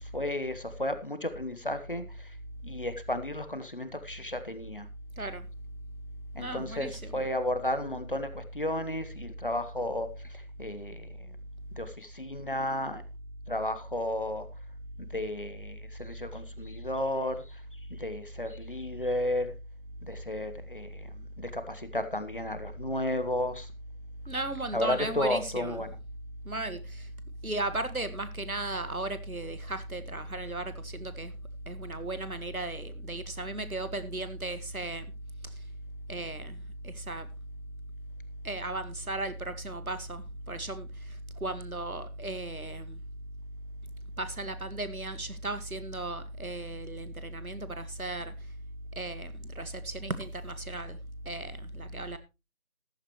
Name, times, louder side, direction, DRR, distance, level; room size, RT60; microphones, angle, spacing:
voice 1, 0.0-2.4 2.6-4.9 6.3-11.4 11.8-13.0 13.5-14.5 15.0-17.6 17.9-19.6 20.1-23.7 24.7-26.0, left 1 dB, 40° left, 1.2 m, -33 dB
voice 2, 6.4-7.2 24.3-25.8 26.5-27.1 27.4-31.3 31.7-35.1 36.1-36.6 36.8-37.3 38.4-40.9 41.4-43.0 44.2-48.3 49.0-51.0 51.3-52.2, right 2 dB, 80° right, 1.9 m, -36 dB
14.5 x 11.5 x 3.1 m
figure-of-eight pair, 165°, 42 cm